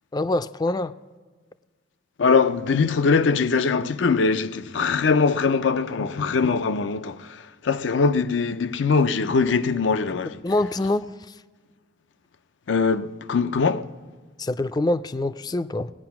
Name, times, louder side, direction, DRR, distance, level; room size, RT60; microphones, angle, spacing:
voice 1, 0.1-0.9 10.4-11.4 14.4-15.9, left 2 dB, 20° left, 0.3 m, -25 dB
voice 2, 2.2-7.3 7.6-10.4 12.7-13.9, left 4 dB, 85° left, 0.5 m, -22 dB
19.0 x 9.3 x 5.9 m
head